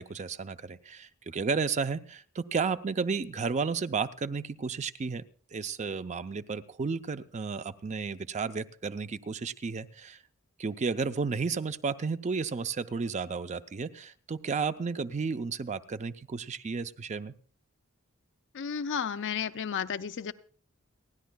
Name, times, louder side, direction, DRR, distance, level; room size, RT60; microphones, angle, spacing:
voice 1, 0.0-5.2 5.5-10.2 10.6-17.3, right 5 dB, 35° right, 12 dB, 0.5 m, -32 dB
voice 2, 18.5-20.3, left 7 dB, 60° left, 12 dB, 0.5 m, -32 dB
29.5 x 10.5 x 2.2 m, 0.43 s
head